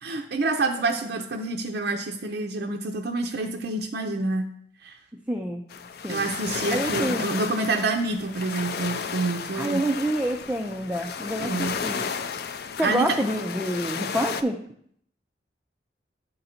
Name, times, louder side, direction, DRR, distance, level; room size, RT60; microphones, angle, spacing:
voice 1, 0.0-4.5 4.8-5.0 6.1-9.8 11.4-11.8 12.8-13.2, right 3 dB, 65° right, 2 dB, 0.5 m, -27 dB
voice 2, 5.3-5.6 6.0-6.3 6.7-7.3 9.5-12.1 12.8-14.6, right 1 dB, 5° right, 2 dB, 0.4 m, -27 dB
sound 1, 5.7-14.4, left 6 dB, 60° left, 0.4 m, -33 dB
8.5 x 3.9 x 4.2 m, 0.66 s
head